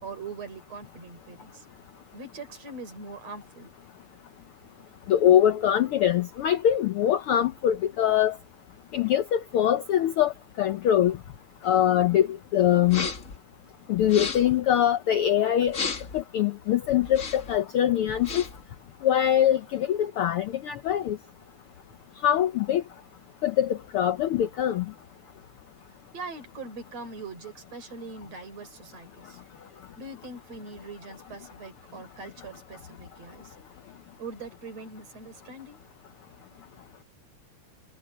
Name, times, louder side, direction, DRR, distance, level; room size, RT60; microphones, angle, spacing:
voice 1, 0.0-1.7 2.1-3.7 26.1-29.4 30.0-33.5 34.2-35.8, right 3 dB, 60° right, 4.8 m, -42 dB
voice 2, 5.1-8.4 8.9-10.3 10.6-11.2 11.6-13.1 13.9-15.8 16.1-18.4 19.0-21.2 22.2-22.8 23.4-24.8, left 10 dB, 90° left, 1.2 m, -23 dB
sound 1, 12.8-13.4 14.0-14.6 15.7-16.2 17.0-17.6 18.1-18.6, left 4 dB, 35° left, 1.6 m, -34 dB
omnidirectional pair, 3.4 m